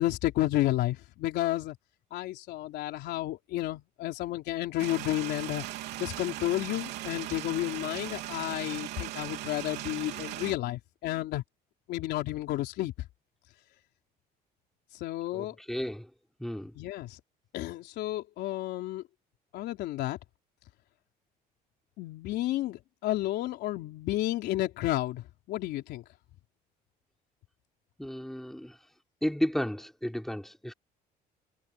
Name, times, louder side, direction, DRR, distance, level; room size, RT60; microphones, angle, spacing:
voice 1, 0.0-1.8 2.1-5.6 6.0-11.4 11.9-12.9 15.0-15.5 16.8-17.2 17.5-19.0 19.5-20.2 22.0-26.0, left 15 dB, 80° left, 3.9 m, -31 dB
sound 1, 4.8-10.5, right 15 dB, 90° right, 3.4 m, -38 dB
voice 2, 15.3-16.1 16.4-16.7 28.0-28.8 29.2-30.7, equal, ahead, 4.4 m, -33 dB
cardioid pair, 110°, 17 cm